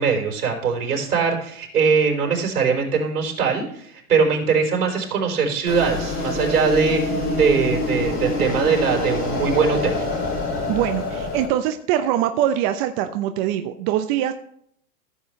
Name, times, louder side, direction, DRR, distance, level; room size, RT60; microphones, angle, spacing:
voice 1, 0.0-10.1, right 5 dB, 80° right, 1 dB, 4.3 m, -21 dB
sound 1, 5.7-11.5, left 2 dB, 25° left, 4.3 m, -25 dB
voice 2, 10.7-14.3, right 11 dB, 40° right, 8 dB, 0.7 m, -23 dB
15.0 x 7.9 x 3.2 m, 0.65 s
hypercardioid pair, 120°, 45 cm